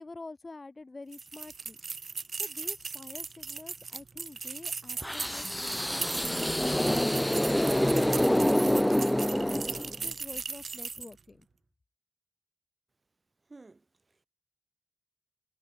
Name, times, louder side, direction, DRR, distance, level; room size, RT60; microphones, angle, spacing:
voice 1, 0.0-1.8 2.4-7.5 8.1-11.5, left 3 dB, 55° left, 3.2 m, -47 dB
sound 1, 1.1-11.2, right 5 dB, 90° right, 1.0 m, -38 dB
sound 2, 5.0-10.1, equal, 10° left, 0.6 m, -26 dB
voice 2, 13.5-14.3, right 3 dB, 55° right, 3.8 m, -54 dB
cardioid pair, 40°, 0 cm